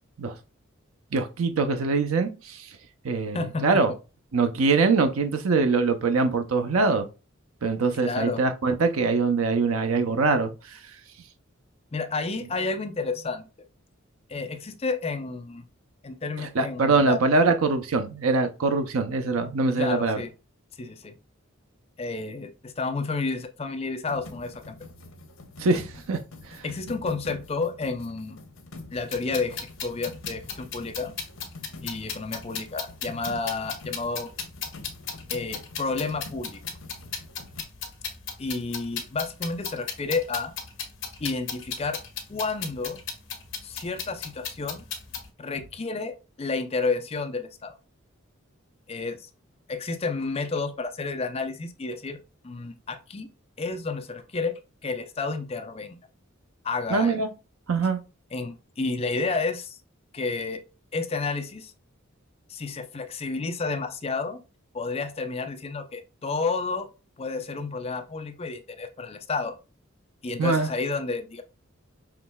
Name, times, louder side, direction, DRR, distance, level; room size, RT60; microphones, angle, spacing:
voice 1, 1.1-2.8 3.0-3.9 4.3-7.1 7.6-10.9 16.4-20.2 25.6-26.2 26.4-26.6 56.9-57.3 57.7-58.0 70.4-70.7, right 3 dB, 90° right, 0.6 m, -23 dB
voice 2, 3.3-3.8 8.0-8.4 11.9-13.5 14.3-15.7 16.0-17.2 19.8-20.3 20.8-21.1 22.0-24.8 26.6-28.4 28.9-31.1 31.8-34.3 35.3-36.6 38.4-40.5 41.2-42.0 42.3-43.0 43.6-44.8 45.4-47.7 48.9-49.3 49.7-52.2 52.4-53.3 53.6-56.0 56.6-57.2 58.3-59.8 60.1-60.6 60.9-61.7 62.5-64.4 64.7-66.9 67.2-69.5 70.2-71.4, left 4 dB, 30° left, 0.5 m, -31 dB
sound 1, 24.1-37.6, left 2 dB, 80° left, 0.8 m, -45 dB
sound 2, 28.9-45.3, left 6 dB, 65° left, 1.1 m, -36 dB
5.8 x 3.1 x 2.2 m
head